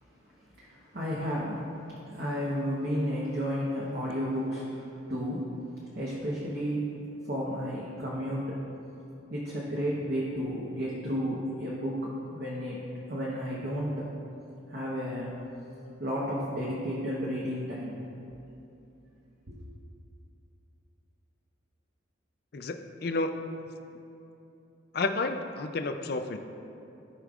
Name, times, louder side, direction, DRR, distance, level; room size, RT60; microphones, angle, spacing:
voice 1, 0.6-5.5 5.9-6.9 7.2-8.6 9.3-12.8 13.1-14.1 14.7-15.3 16.0-18.0 19.5-19.6, equal, 50° right, -6 dB, 1.0 m, -32 dB
voice 2, 22.5-23.5 24.9-26.4, left 3 dB, 50° left, 7 dB, 0.4 m, -31 dB
15.5 x 5.2 x 2.4 m, 2.8 s
head